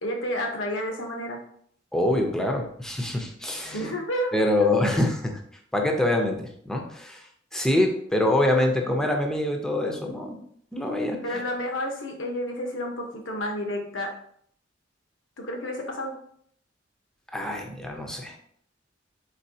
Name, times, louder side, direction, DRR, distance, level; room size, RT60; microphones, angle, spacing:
voice 1, 0.0-1.4 3.7-4.7 11.2-14.1 15.4-16.2, equal, 85° left, 3 dB, 0.9 m, -30 dB
voice 2, 1.9-3.9 4.3-5.4 5.7-10.4 10.7-11.4 17.3-18.4, left 1 dB, 5° left, 2 dB, 0.6 m, -25 dB
4.2 x 4.2 x 2.7 m, 0.64 s
head